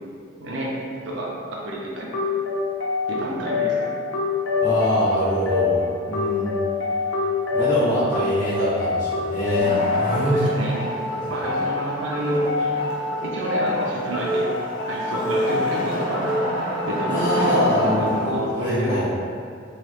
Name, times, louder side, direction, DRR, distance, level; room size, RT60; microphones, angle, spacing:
voice 1, 0.4-0.7 1.0-2.1 3.1-3.9 10.1-10.8 11.3-12.7 13.2-14.5 14.8-16.5 16.9-19.1, right 1 dB, 65° right, -4 dB, 0.5 m, -29 dB
sound 1, 2.1-18.1, left 3 dB, 75° left, 0.6 m, -25 dB
voice 2, 4.6-5.8 6.1-6.5 7.5-10.4 11.2-11.3 17.1-19.0, equal, 10° left, -14 dB, 0.7 m, -24 dB
Wood, 9.6-18.5, equal, 45° left, 0.7 m, -30 dB
3.0 x 2.3 x 3.2 m, 2.3 s
head